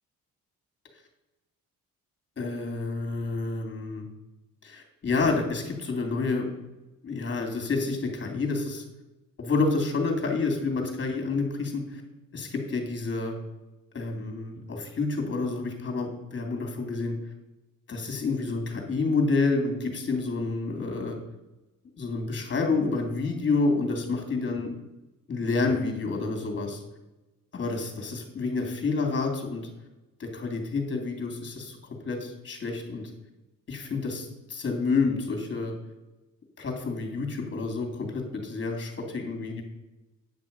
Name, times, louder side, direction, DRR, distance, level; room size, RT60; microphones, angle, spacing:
voice 1, 2.4-4.1 4.6-6.5 7.0-8.8 9.4-12.0 12.3-13.4 13.9-17.1 17.9-21.2 22.0-24.7 25.3-26.8 27.5-29.7 30.2-31.8 32.0-33.1 33.7-35.7 36.6-39.6, left 3 dB, 40° left, 3 dB, 2.8 m, -29 dB
9.7 x 6.1 x 5.3 m, 1.0 s
cardioid pair, 90°, 30 cm